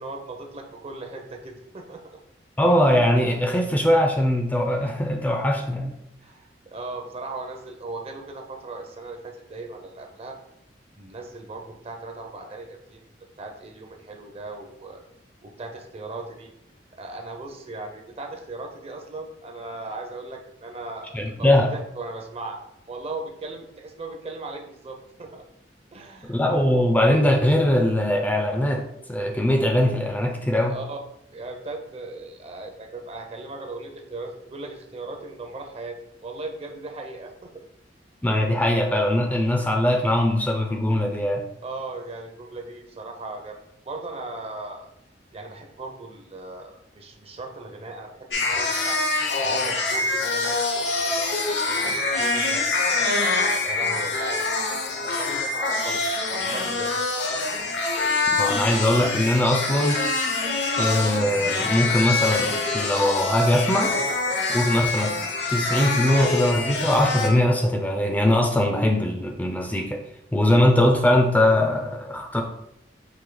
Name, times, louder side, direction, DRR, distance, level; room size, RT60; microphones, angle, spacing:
voice 1, 0.0-2.0 6.2-10.4 11.0-13.0 13.4-15.0 15.4-16.5 17.0-22.6 22.9-25.4 25.9-26.3 30.7-31.0 31.3-36.0 36.2-37.6 41.6-43.6 43.8-44.9 45.3-49.0 49.4-52.7 53.6-54.5 54.8-56.0 56.3-56.9, right 2 dB, 35° right, 3 dB, 0.6 m, -37 dB
voice 2, 2.6-5.9 21.1-21.7 26.3-28.8 29.1-30.8 38.2-41.4 58.4-60.0 60.8-63.9 64.5-65.1 65.5-70.0 70.3-72.4, left 1 dB, 10° left, 2 dB, 0.4 m, -21 dB
sound 1, 48.3-67.3, left 3 dB, 80° left, 0.8 m, -25 dB
4.8 x 2.6 x 3.8 m, 0.79 s
head